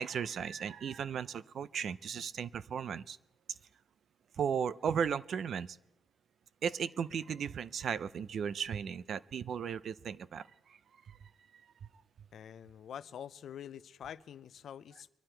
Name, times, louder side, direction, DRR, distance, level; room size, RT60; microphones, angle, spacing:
voice 1, 0.0-3.2 4.4-5.8 6.6-10.8 11.1-11.2, right 7 dB, 55° right, 17 dB, 0.4 m, -36 dB
voice 2, 12.3-15.1, left 9 dB, 60° left, 16 dB, 0.5 m, -46 dB
23.5 x 11.5 x 4.4 m, 0.92 s
cardioid pair, 150°, 0 cm